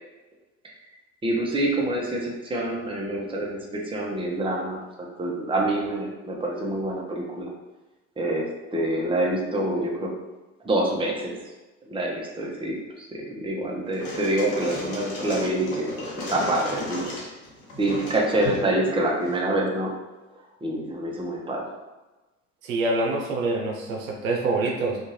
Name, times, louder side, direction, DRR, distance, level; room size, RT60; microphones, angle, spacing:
voice 1, 1.2-4.8 5.2-7.5 8.2-10.1 10.6-11.3 11.8-15.9 16.3-17.1 17.8-19.9 20.6-21.7, right 1 dB, 15° right, -2 dB, 0.7 m, -26 dB
sound 1, 13.9-19.4, left 1 dB, 90° left, 0.8 m, -35 dB
voice 2, 22.6-25.0, right 2 dB, 85° right, 0 dB, 0.6 m, -25 dB
2.6 x 2.4 x 3.1 m, 1.1 s
hypercardioid pair, 65°, 40 cm